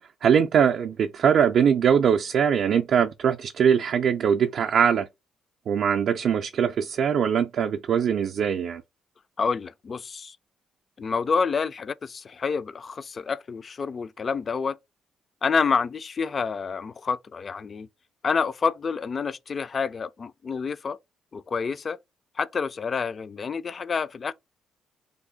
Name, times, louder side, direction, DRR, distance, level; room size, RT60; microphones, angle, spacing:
voice 1, 0.2-5.1 5.7-8.8, right 7 dB, 65° right, 0.3 m, -22 dB
voice 2, 9.4-10.4 11.0-14.8 15.4-17.9 18.2-21.0 21.3-22.0 22.4-24.3, left 5 dB, 40° left, 0.3 m, -28 dB
3.4 x 2.2 x 3.6 m
cardioid pair, 90°, 0 cm